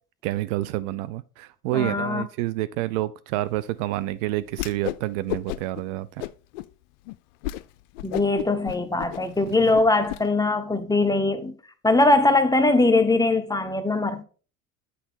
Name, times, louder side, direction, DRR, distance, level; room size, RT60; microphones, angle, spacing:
voice 1, 0.2-6.3, right 16 dB, 60° right, 0.5 m, -28 dB
voice 2, 1.7-2.2 8.0-11.5 11.8-14.2, left 2 dB, 10° left, 0.6 m, -21 dB
Whoosh swoosh swish, 4.5-5.0 5.3-5.8 6.2-6.7 7.1-7.2 7.4-7.6 7.9-10.2, left 16 dB, 60° left, 0.5 m, -32 dB
8.2 x 3.9 x 4.0 m
hypercardioid pair, 65°, 42 cm